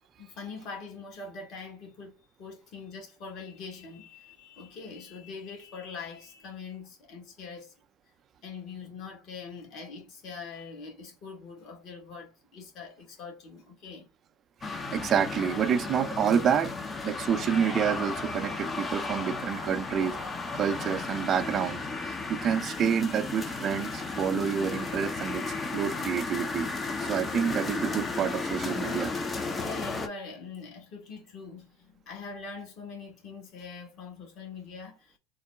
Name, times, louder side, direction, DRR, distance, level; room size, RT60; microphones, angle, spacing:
voice 1, 0.2-2.1 2.4-7.7 8.4-14.1 29.6-35.2, left 5 dB, 50° left, 1.4 m, -43 dB
sound 1, 14.6-30.1, left 3 dB, 25° left, 0.6 m, -34 dB
voice 2, 14.7-16.8 17.0-20.2 20.5-26.7 27.0-29.1, right 8 dB, 40° right, 0.5 m, -28 dB
3.8 x 2.1 x 3.4 m
hypercardioid pair, 80°, 0 cm